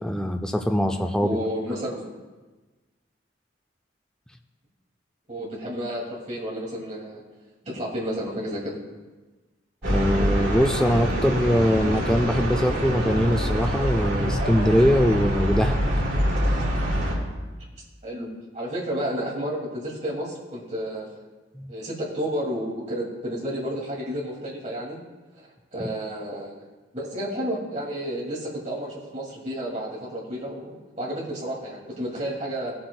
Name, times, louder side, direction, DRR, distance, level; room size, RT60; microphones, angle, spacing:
voice 1, 0.0-1.4 9.8-15.8 21.5-21.7, equal, 5° left, 4 dB, 0.4 m, -22 dB
voice 2, 1.2-2.1 5.3-7.2 7.7-8.8 18.0-18.3 18.5-21.1 21.7-25.0 25.4-26.5 26.9-32.7, equal, 35° right, -4 dB, 2.3 m, -31 dB
sound 1, 9.8-17.2, equal, 80° right, 2.6 m, -25 dB
20.0 x 7.7 x 2.3 m, 1.2 s
head